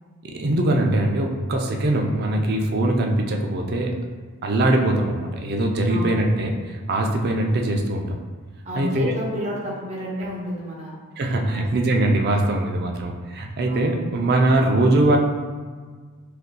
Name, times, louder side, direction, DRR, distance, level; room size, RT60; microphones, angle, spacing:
voice 1, 0.2-4.0 4.4-8.2 8.8-9.1 11.2-15.2, right 1 dB, 50° right, 2 dB, 0.4 m, -22 dB
voice 2, 8.6-10.9 11.5-11.7 13.6-13.8, equal, 30° right, -5 dB, 0.8 m, -30 dB
6.4 x 2.6 x 2.2 m, 1.5 s
head